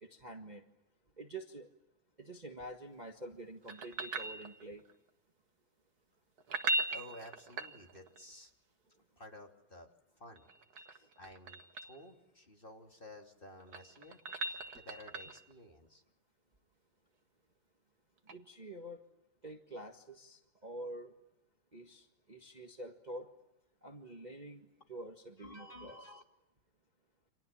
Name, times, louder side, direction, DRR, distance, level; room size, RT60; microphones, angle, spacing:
voice 1, 0.0-0.6 1.2-1.7 2.2-4.8 18.3-19.0 19.4-21.1 21.7-23.3 23.8-26.0, right 1 dB, 20° right, 3 dB, 1.6 m, -47 dB
sound 1, 3.7-4.9 6.4-8.2 10.4-12.0 13.4-15.5 18.3-18.4, right 2 dB, 50° right, 1.9 m, -39 dB
voice 2, 6.9-8.5 9.2-9.9 10.2-10.5 10.8-10.9 11.2-16.0 25.4-26.2, left 1 dB, 25° left, 2 dB, 3.0 m, -53 dB
30.0 x 26.5 x 7.4 m, 0.93 s
omnidirectional pair, 2.2 m